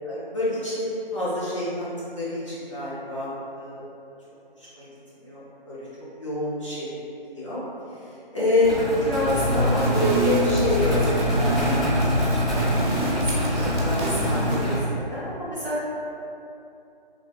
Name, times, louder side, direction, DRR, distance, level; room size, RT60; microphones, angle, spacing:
voice 1, 0.0-0.8 1.1-1.9 2.1-3.8 4.6-4.9 5.2-5.9 6.2-6.9 7.3-7.6 8.3-15.8, left 1 dB, 30° left, -11 dB, 0.7 m, -27 dB
sound 1, 8.6-14.8, equal, ahead, 0.3 m, -27 dB
sound 2, 9.3-14.7, equal, 55° right, 0.8 m, -25 dB
3.2 x 2.1 x 3.8 m, 2.7 s
figure-of-eight pair, 170°, 29 cm